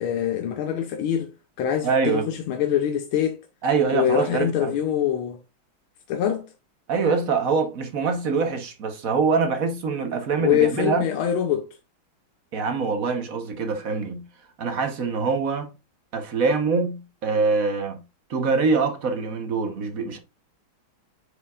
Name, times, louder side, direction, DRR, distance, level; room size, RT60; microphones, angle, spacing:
voice 1, 0.0-1.3 1.6-3.4 3.9-5.4 6.1-6.4 10.4-11.7, left 9 dB, 85° left, 1.7 m, -24 dB
voice 2, 1.8-2.3 3.6-4.7 6.9-11.0 12.5-14.2 14.6-15.7 16.1-18.0 18.3-20.2, right 4 dB, 50° right, 1.3 m, -24 dB
8.4 x 5.1 x 2.4 m
omnidirectional pair, 2.3 m